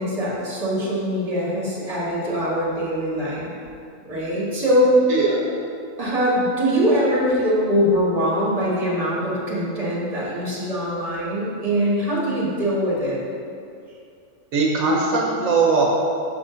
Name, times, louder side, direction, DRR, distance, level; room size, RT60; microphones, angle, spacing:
voice 1, 0.0-3.5 4.0-4.9 6.0-13.2, equal, 30° right, -7 dB, 1.6 m, -22 dB
voice 2, 5.1-5.4 14.5-15.8, right 4 dB, 85° right, -2 dB, 1.3 m, -20 dB
6.2 x 3.5 x 5.1 m, 2.5 s
omnidirectional pair, 1.4 m